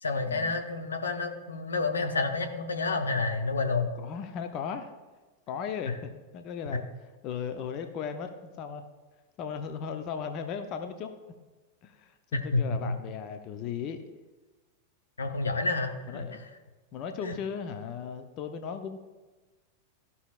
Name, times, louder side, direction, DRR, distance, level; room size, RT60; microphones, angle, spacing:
voice 1, 0.0-3.9 5.9-6.0 12.3-13.0 15.2-16.2 17.2-17.3, left 3 dB, 75° left, 4 dB, 0.8 m, -29 dB
voice 2, 4.0-4.9 5.5-6.8 7.2-8.8 9.4-11.1 11.8-14.0 16.1-16.4 16.9-19.0, left 7 dB, 40° left, 7 dB, 0.6 m, -36 dB
14.5 x 5.5 x 2.4 m, 1.2 s
figure-of-eight pair, 90°, 0 cm